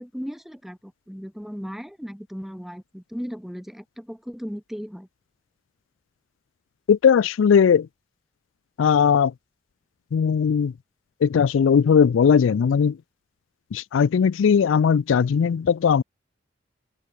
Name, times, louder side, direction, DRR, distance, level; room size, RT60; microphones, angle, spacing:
voice 1, 0.0-5.1, equal, ahead, 1.9 m, -36 dB
voice 2, 6.9-7.9 8.8-9.3 10.1-10.7 11.2-13.0 13.7-16.0, left 7 dB, 85° left, 0.4 m, -18 dB
open air
head